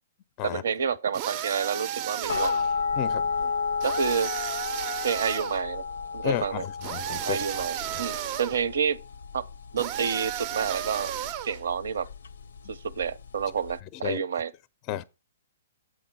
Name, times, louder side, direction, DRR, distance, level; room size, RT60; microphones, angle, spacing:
voice 1, 0.4-2.6 3.4-3.5 3.8-4.3 5.0-5.8 6.1-6.6 7.2-9.0 9.3-9.5 9.7-11.1 11.4-12.1 12.7-14.5, right 6 dB, 75° right, 0.6 m, -29 dB
sound 1, 1.1-2.7 3.8-5.6 6.8-8.6 9.8-11.6, right 11 dB, 35° right, 0.4 m, -33 dB
sound 2, 2.3-13.8, left 5 dB, 85° left, 0.5 m, -32 dB
voice 2, 3.0-3.3 6.2-7.7 14.0-14.2 14.9-15.0, left 13 dB, 30° left, 0.4 m, -32 dB
7.8 x 4.0 x 5.9 m
hypercardioid pair, 155°, 0 cm